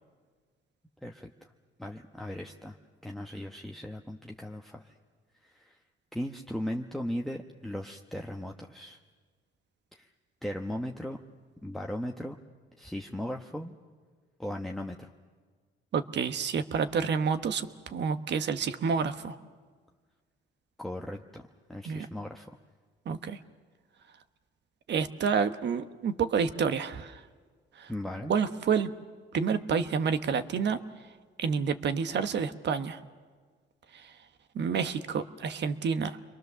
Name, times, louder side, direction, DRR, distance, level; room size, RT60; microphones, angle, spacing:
voice 1, 1.0-1.5 1.8-2.8 3.0-4.9 5.4-5.8 6.1-9.0 9.9-10.1 10.4-11.2 11.6-12.3 12.8-13.8 14.4-15.1 20.8-22.5 27.9-28.3, left 1 dB, ahead, 2 dB, 1.1 m, -37 dB
voice 2, 15.9-19.4 21.8-22.1 23.1-23.4 24.9-27.2 27.8-27.9 28.3-28.9 29.3-30.8 31.4-33.0 33.9-34.1 34.5-36.2, right 6 dB, 60° right, 10 dB, 1.2 m, -29 dB
29.0 x 23.0 x 6.9 m, 1.5 s
cardioid pair, 90°, 20 cm